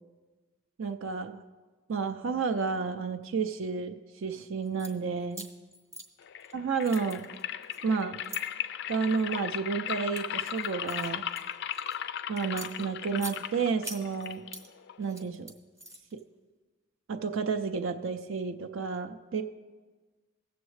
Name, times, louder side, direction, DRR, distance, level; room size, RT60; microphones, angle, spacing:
voice 1, 0.8-1.4 1.9-5.5 6.5-7.3 7.8-8.2 8.9-11.2 12.3-14.4 15.0-15.5 17.1-19.4, right 5 dB, 60° right, 7 dB, 0.4 m, -31 dB
sound 1, 4.6-4.9 5.3-6.5 6.8-8.4 9.1-9.4 9.9-12.0 12.4-13.4 13.8-14.7 15.0-16.2, right 1 dB, 15° right, 0.7 m, -44 dB
sound 2, 6.2-15.2, left 10 dB, 50° left, 0.3 m, -37 dB
16.0 x 7.0 x 3.2 m, 1.3 s
head